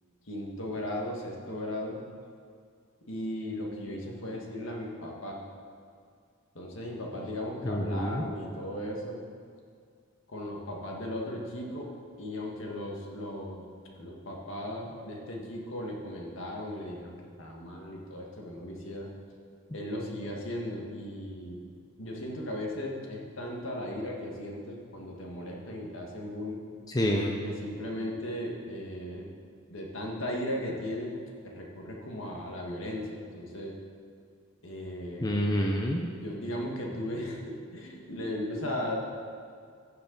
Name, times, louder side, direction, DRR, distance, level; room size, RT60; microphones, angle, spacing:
voice 1, 0.3-2.0 3.1-5.4 6.5-9.2 10.3-11.9 12.2-13.7 13.9-19.1 19.7-21.7 22.0-26.6 27.4-29.3 29.7-31.1 31.4-33.7 34.6-35.4 36.0-39.0, left 1 dB, 65° left, -1 dB, 1.8 m, -37 dB
voice 2, 7.6-8.2 26.9-27.3 35.2-36.0, equal, 20° left, 0 dB, 0.7 m, -27 dB
15.5 x 6.7 x 4.0 m, 2.2 s
head